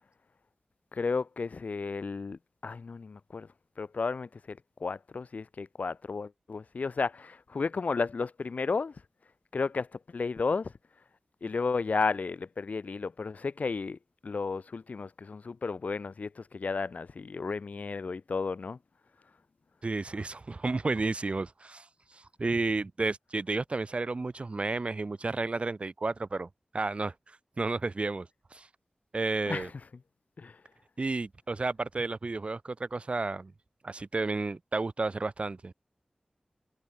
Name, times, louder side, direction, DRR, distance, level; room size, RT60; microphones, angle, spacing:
voice 1, 0.9-3.5 3.8-9.0 9.5-10.7 11.4-18.8 29.5-29.7 30.4-30.6, left 4 dB, 80° left, 3.4 m, -33 dB
voice 2, 19.8-21.8 22.1-26.5 26.7-27.1 27.6-28.7 29.1-29.7 31.0-33.5 33.8-35.7, right 3 dB, 50° right, 2.2 m, -32 dB
wide cardioid pair, 85°, 3 cm